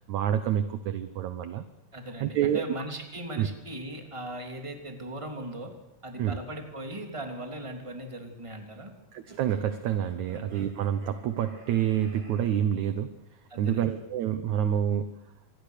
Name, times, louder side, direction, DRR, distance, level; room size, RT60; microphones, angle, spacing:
voice 1, 0.0-1.7 2.2-2.6 3.4-3.5 6.2-6.4 9.1-13.2 13.6-15.2, right 10 dB, 70° right, 11 dB, 1.8 m, -28 dB
voice 2, 1.9-5.7 6.0-8.9 10.3-10.4 13.5-13.9, right 1 dB, 10° right, 4 dB, 2.8 m, -39 dB
sound 1, 9.3-12.5, right 2 dB, 30° right, 5.3 m, -54 dB
25.5 x 20.5 x 6.7 m, 0.87 s
omnidirectional pair, 4.5 m